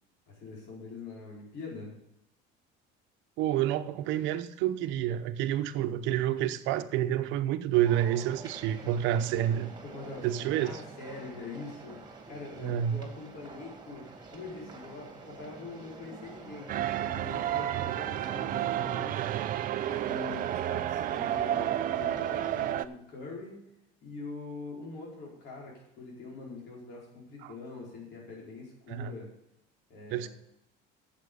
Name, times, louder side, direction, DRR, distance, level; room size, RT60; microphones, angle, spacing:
voice 1, 0.3-1.9 9.8-19.2 19.8-23.6 24.0-29.3 29.9-30.3, left 3 dB, 60° left, -4 dB, 4.7 m, -44 dB
voice 2, 3.4-9.7 10.2-10.8 12.6-13.0 27.4-27.5 28.9-29.1 30.1-30.3, right 11 dB, 70° right, 10 dB, 0.9 m, -29 dB
sound 1, 7.7-22.7, right 3 dB, 20° right, 2.2 m, -47 dB
sound 2, 16.7-22.9, right 12 dB, 45° right, 0.5 m, -31 dB
9.1 x 7.6 x 6.9 m, 0.82 s
cardioid pair, 130°, 20 cm